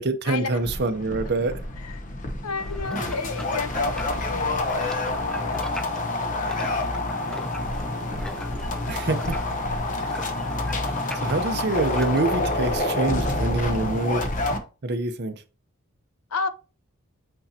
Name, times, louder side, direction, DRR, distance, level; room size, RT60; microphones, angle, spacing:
voice 1, 0.0-1.5 8.9-9.4 11.1-14.3 14.8-15.4, right 2 dB, 50° right, 0.7 m, -25 dB
sound 1, 0.6-14.6, left 2 dB, 35° left, 0.9 m, -28 dB
voice 2, 2.4-5.6 11.5-11.6 16.3-16.5, left 4 dB, 80° left, 0.7 m, -32 dB
sound 2, 2.6-12.5, left 1 dB, 5° left, 0.4 m, -40 dB
8.3 x 4.3 x 2.8 m
head